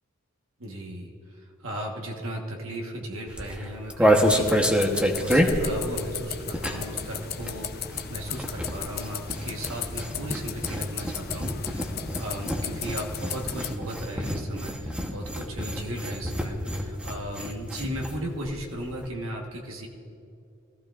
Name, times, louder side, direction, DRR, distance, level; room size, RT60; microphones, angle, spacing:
voice 1, 0.6-1.1 1.4-19.9, equal, 70° right, 0 dB, 1.4 m, -36 dB
sound 1, 3.3-7.0 7.3-18.2 18.5-18.6 18.8-19.1, equal, 5° right, 1.0 m, -27 dB
sound 2, 4.2-13.8, left 7 dB, 50° left, 0.7 m, -36 dB
22.0 x 15.0 x 2.5 m, 2.5 s
head